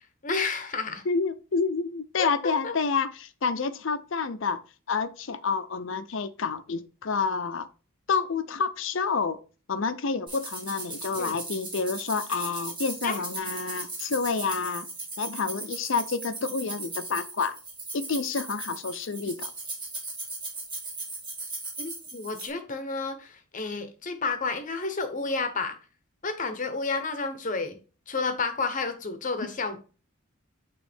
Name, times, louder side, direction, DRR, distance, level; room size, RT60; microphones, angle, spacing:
voice 1, 0.2-1.0 2.2-2.7 11.2-11.4 13.0-13.2 21.8-25.8 26.2-27.8 28.1-29.8, left 4 dB, 40° left, 0.8 m, -31 dB
voice 2, 1.1-4.6 4.9-7.7 8.1-9.4 9.7-14.9 15.2-17.6 17.9-19.5, left 5 dB, 60° left, 0.6 m, -29 dB
sound 1, 10.3-22.5, right 3 dB, 25° right, 1.8 m, -38 dB
8.8 x 3.1 x 3.5 m
head